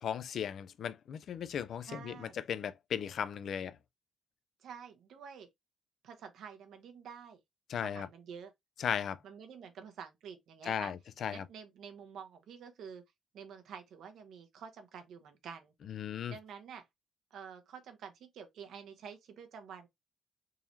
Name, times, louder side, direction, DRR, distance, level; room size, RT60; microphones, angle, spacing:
voice 1, 0.0-3.8 7.7-8.1 8.8-9.2 10.6-11.5 15.9-16.3, left 8 dB, 65° left, 0.4 m, -36 dB
voice 2, 1.8-2.3 4.6-5.5 6.0-7.4 7.8-8.5 9.2-10.9 11.3-13.0 13.3-15.7 16.3-16.9 17.3-19.9, right 7 dB, 75° right, 1.0 m, -49 dB
3.8 x 3.0 x 2.7 m
cardioid pair, 90°, 0 cm